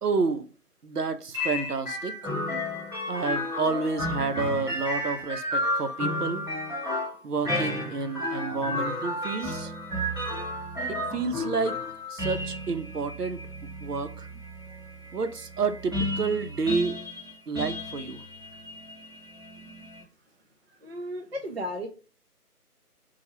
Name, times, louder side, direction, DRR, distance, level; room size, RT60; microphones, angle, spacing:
voice 1, 0.0-0.5 0.8-2.3 3.1-6.4 7.2-9.7 10.9-11.8 12.1-13.4 13.8-14.3 15.1-17.0 17.5-18.2, right 4 dB, 75° right, 9 dB, 0.7 m, -30 dB
sound 1, 1.3-20.0, left 1 dB, 15° right, 0.8 m, -32 dB
voice 2, 20.8-21.9, equal, 45° right, 2 dB, 0.4 m, -35 dB
4.3 x 2.3 x 2.9 m, 0.35 s
figure-of-eight pair, 150°, 47 cm